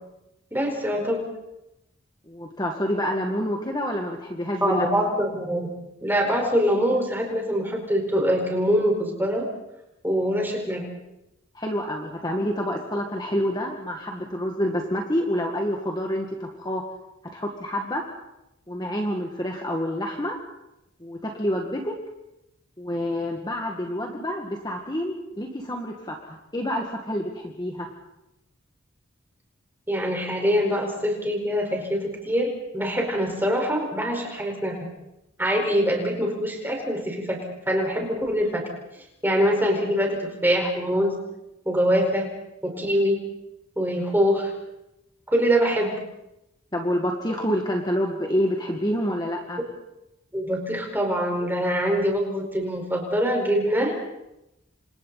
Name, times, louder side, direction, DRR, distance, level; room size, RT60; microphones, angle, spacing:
voice 1, 0.5-1.3 4.6-5.7 6.0-9.4 10.0-10.9 29.9-34.8 35.4-38.6 39.2-41.1 41.6-42.3 42.6-43.2 43.8-44.5 45.3-46.0 50.3-53.9, equal, 10° right, 0 dB, 4.9 m, -24 dB
voice 2, 2.3-4.9 11.5-16.8 17.3-18.0 18.7-20.4 21.0-21.9 22.8-27.9 46.7-49.6, equal, 20° left, 1 dB, 1.9 m, -28 dB
29.0 x 26.0 x 4.2 m, 0.90 s
head